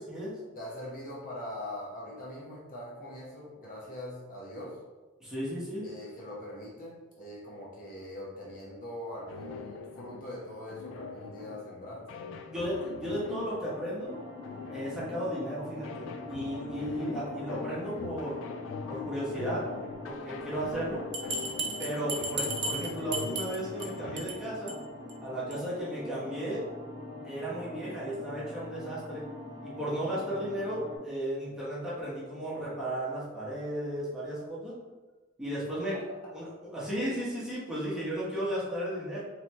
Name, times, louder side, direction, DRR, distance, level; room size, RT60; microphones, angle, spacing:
voice 1, 0.5-4.8 5.8-12.2 35.9-36.3, left 1 dB, 45° left, -5 dB, 1.0 m, -42 dB
voice 2, 5.2-5.9 12.4-14.2 14.7-18.4 18.9-19.7 20.0-21.1 21.8-24.7 25.2-26.7 27.2-29.2 29.6-34.8 35.4-36.0 36.3-39.2, equal, 5° right, -9 dB, 1.1 m, -34 dB
sound 1, 9.3-24.3, left 5 dB, 75° left, 0.3 m, -42 dB
sound 2, 14.0-31.0, left 1 dB, 25° right, 1.1 m, -44 dB
Bell, 21.1-23.9 24.2-24.4 24.7-24.8 25.1-25.2 25.5-25.6, right 2 dB, 60° right, 0.6 m, -34 dB
3.9 x 3.2 x 2.9 m, 1.2 s
head